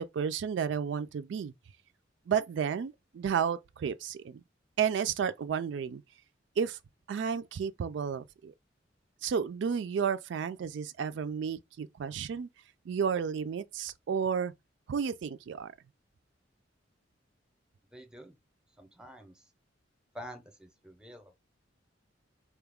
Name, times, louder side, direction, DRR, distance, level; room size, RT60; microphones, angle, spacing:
voice 1, 0.0-1.5 2.3-4.4 4.8-6.0 6.6-6.8 7.1-8.5 9.2-12.5 12.9-14.5 14.9-15.7, right 7 dB, 70° right, 0.3 m, -32 dB
voice 2, 17.9-18.3 18.8-19.4 20.1-21.4, equal, 5° right, 0.6 m, -48 dB
4.4 x 2.3 x 3.4 m
head